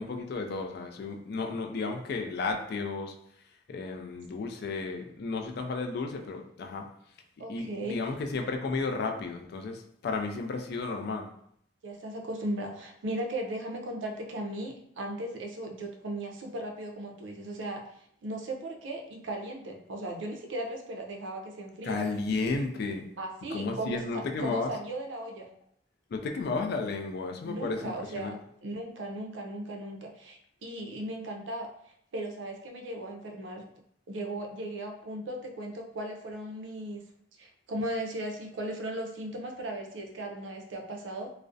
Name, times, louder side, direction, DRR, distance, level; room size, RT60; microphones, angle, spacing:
voice 1, 0.0-3.1 3.7-6.8 7.5-11.3 21.8-23.0 23.5-24.7 26.1-28.4, left 3 dB, 60° left, 4 dB, 0.3 m, -33 dB
voice 2, 7.4-8.0 11.8-17.8 18.2-22.0 23.2-25.5 27.4-28.4 28.6-31.7 32.1-33.6 34.1-37.0 37.4-41.3, right 1 dB, 85° right, 2 dB, 0.4 m, -37 dB
2.4 x 2.0 x 2.5 m, 0.69 s
head